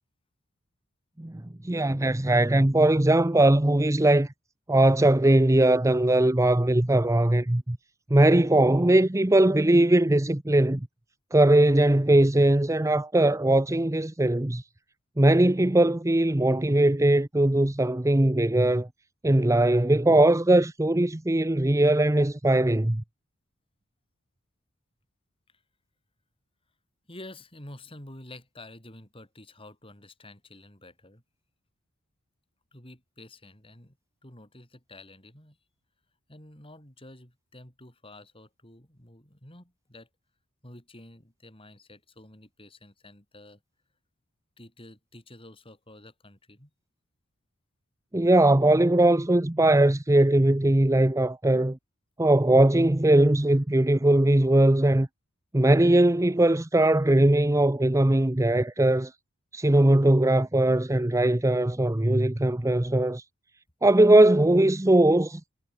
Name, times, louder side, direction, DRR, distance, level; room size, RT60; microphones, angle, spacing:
voice 1, 1.2-4.3 4.7-7.8 8.1-10.9 11.3-14.6 15.2-18.9 19.2-23.0 48.1-51.8 52.2-55.1 55.5-59.1 59.5-63.2 63.8-65.4, right 1 dB, 15° right, 0.7 m, -20 dB
voice 2, 27.1-31.2 32.7-34.0 34.2-35.6 36.3-40.1 40.6-43.6 44.6-46.7, left 1 dB, 25° left, 7.1 m, -49 dB
head